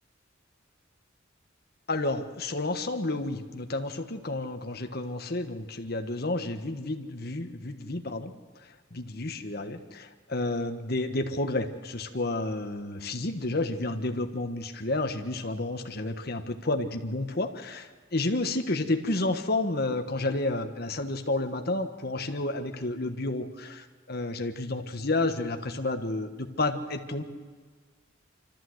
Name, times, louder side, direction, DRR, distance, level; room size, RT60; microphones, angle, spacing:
voice 1, 1.9-8.3 8.6-27.2, left 2 dB, 50° left, 6 dB, 1.4 m, -31 dB
26.0 x 14.0 x 7.9 m, 1.5 s
head